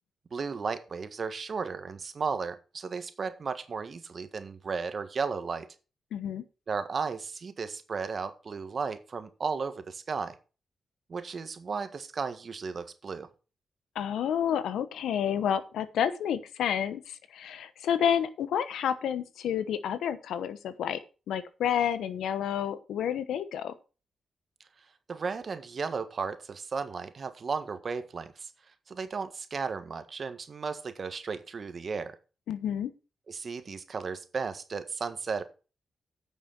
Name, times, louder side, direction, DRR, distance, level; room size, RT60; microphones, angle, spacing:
voice 1, 0.3-5.7 6.7-10.3 11.1-13.3 25.1-28.5 28.9-32.1 33.3-35.4, right 5 dB, 55° right, 10 dB, 1.5 m, -34 dB
voice 2, 6.1-6.4 13.9-21.0 21.3-23.7 32.5-32.9, left 9 dB, 85° left, 13 dB, 1.0 m, -30 dB
9.5 x 6.3 x 6.1 m, 0.33 s
supercardioid pair, 50°, 0 cm